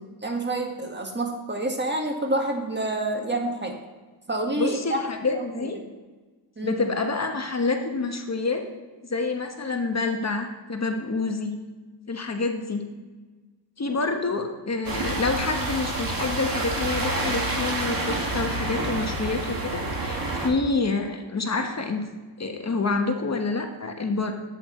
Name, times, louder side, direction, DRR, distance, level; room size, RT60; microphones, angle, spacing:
voice 1, 0.0-3.7 4.3-5.0 5.3-5.7 6.6-6.8, right 2 dB, 20° right, 2 dB, 1.7 m, -28 dB
voice 2, 4.6-5.8 6.6-8.6 9.1-11.6 12.1-12.9 13.8-22.1 22.4-24.3, left 3 dB, 35° left, 5 dB, 1.1 m, -27 dB
sound 1, 14.8-20.5, right 2 dB, 45° right, 2.1 m, -28 dB
8.1 x 8.1 x 3.1 m, 1.3 s
cardioid pair, 60°, 48 cm